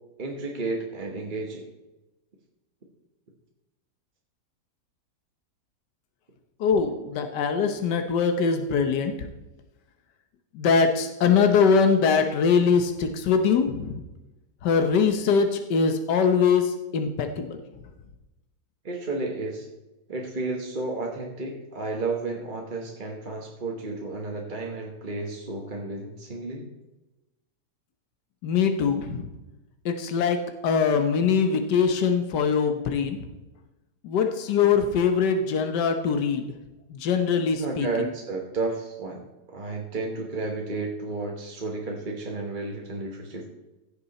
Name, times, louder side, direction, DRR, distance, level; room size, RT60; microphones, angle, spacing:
voice 1, 0.2-1.7 18.8-19.7 20.1-26.7 37.6-43.4, right 3 dB, 30° right, 0 dB, 1.3 m, -32 dB
voice 2, 6.6-9.1 10.5-14.0 14.6-17.6 28.4-29.3 29.8-33.3 34.0-36.4 36.9-38.1, left 6 dB, 85° left, 6 dB, 1.5 m, -22 dB
15.5 x 6.8 x 4.2 m, 1.0 s
omnidirectional pair, 1.8 m